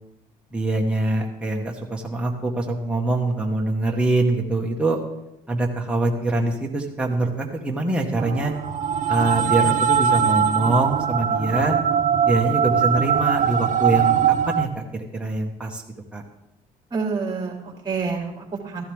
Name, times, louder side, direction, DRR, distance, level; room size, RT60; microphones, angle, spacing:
voice 1, 0.5-5.0 5.5-8.5 9.1-11.8 12.3-14.2 14.5-15.8 16.1-16.2, right 2 dB, 5° right, 0 dB, 1.6 m, -24 dB
sound 1, 8.2-14.7, right 8 dB, 50° right, 0.7 m, -21 dB
voice 2, 16.9-18.8, right 4 dB, 25° right, 1 dB, 3.0 m, -28 dB
14.5 x 11.5 x 3.6 m, 0.89 s
cardioid pair, 110°, 17 cm